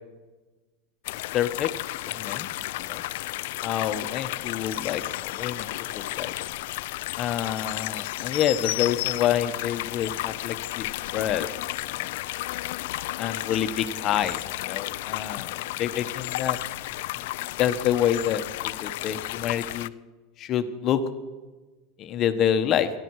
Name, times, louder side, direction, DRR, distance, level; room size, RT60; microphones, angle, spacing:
sound 1, 1.0-19.9, left 18 dB, 75° left, 0.4 m, -32 dB
voice 1, 1.3-1.7 2.0-2.5 2.8-3.0 3.6-6.3 7.2-10.9 11.1-11.5 11.8-12.1 13.2-16.6 17.6-19.9 20.4-21.0 22.0-22.9, left 10 dB, 40° left, 9 dB, 1.2 m, -27 dB
24.0 x 11.5 x 4.8 m, 1.2 s
supercardioid pair, 125°, 0 cm